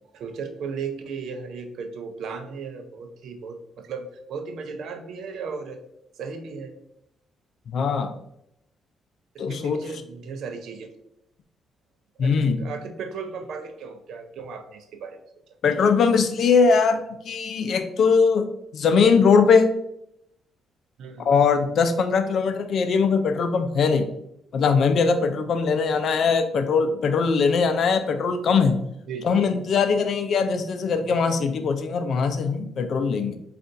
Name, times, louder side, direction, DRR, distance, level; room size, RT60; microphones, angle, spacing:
voice 1, 0.1-5.8 6.1-6.8 9.3-10.9 12.2-15.2 21.0-21.3 29.1-29.4, right 5 dB, 70° right, 7 dB, 0.5 m, -36 dB
voice 2, 7.7-8.1 9.4-9.8 12.2-12.6 15.6-18.5 18.7-19.7 21.2-24.1 24.5-28.8 29.2-33.4, left 5 dB, 60° left, 8 dB, 0.4 m, -21 dB
5.3 x 2.4 x 2.5 m, 0.79 s
cardioid pair, 90°, 0 cm